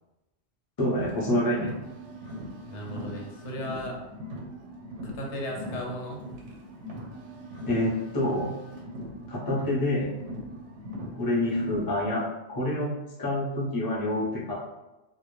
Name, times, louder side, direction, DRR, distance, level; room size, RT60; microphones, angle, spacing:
voice 1, 0.8-1.7 7.7-8.5 9.3-10.1 11.2-12.2 12.5-12.9 13.2-14.5, left 1 dB, 25° left, -6 dB, 0.6 m, -27 dB
Car, 0.9-12.0, equal, 85° right, 0.9 m, -40 dB
voice 2, 2.7-4.0 5.0-6.2, left 1 dB, 85° left, -1 dB, 0.9 m, -36 dB
2.1 x 2.1 x 2.9 m, 1.0 s
omnidirectional pair, 1.2 m